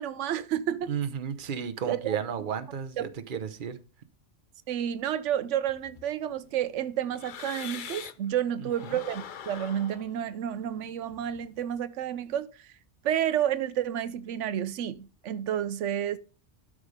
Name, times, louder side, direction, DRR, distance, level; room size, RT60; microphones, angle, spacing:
voice 1, 0.0-0.9 1.9-2.2 3.0-3.1 4.7-12.5 13.0-16.2, right 10 dB, 90° right, 1.0 m, -30 dB
voice 2, 0.9-3.8 8.6-9.0, right 7 dB, 50° right, 1.0 m, -34 dB
sound 1, 5.7-8.3 8.7-11.7, left 8 dB, 55° left, 0.7 m, -44 dB
12.5 x 4.9 x 5.0 m
omnidirectional pair, 1.2 m